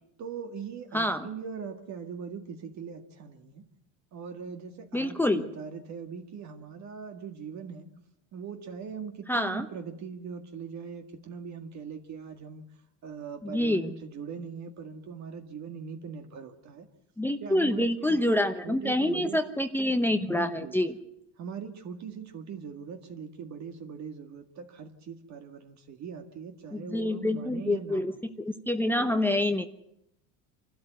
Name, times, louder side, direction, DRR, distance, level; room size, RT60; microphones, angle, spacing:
voice 1, 0.2-3.6 4.1-7.9 8.3-12.6 13.0-16.9 17.4-19.4 20.3-20.7 21.4-28.1 29.0-29.2, right 6 dB, 45° right, 5 dB, 2.0 m, -41 dB
voice 2, 0.9-1.3 4.9-5.4 9.3-9.7 13.4-13.9 17.2-20.9 26.7-28.1 28.4-29.7, left 1 dB, 5° left, 8 dB, 0.9 m, -27 dB
26.0 x 12.5 x 9.3 m, 0.81 s
supercardioid pair, 110°, 39 cm